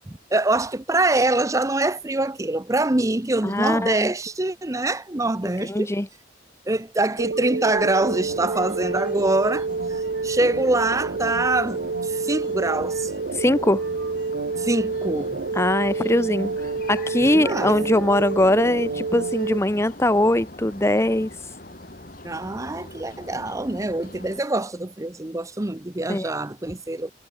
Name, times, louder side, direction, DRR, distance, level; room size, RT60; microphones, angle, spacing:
voice 1, 0.1-5.9 6.7-13.1 14.6-15.4 17.2-17.8 22.2-27.1, right 2 dB, 15° right, 0.7 m, -24 dB
voice 2, 3.4-4.1 5.6-6.1 13.3-13.8 15.5-16.5 16.9-21.3 26.1-26.3, left 1 dB, 15° left, 1.0 m, -21 dB
sound 1, 7.2-19.6, right 4 dB, 70° right, 0.7 m, -28 dB
sound 2, 8.0-24.4, left 1 dB, 50° left, 6.3 m, -42 dB
head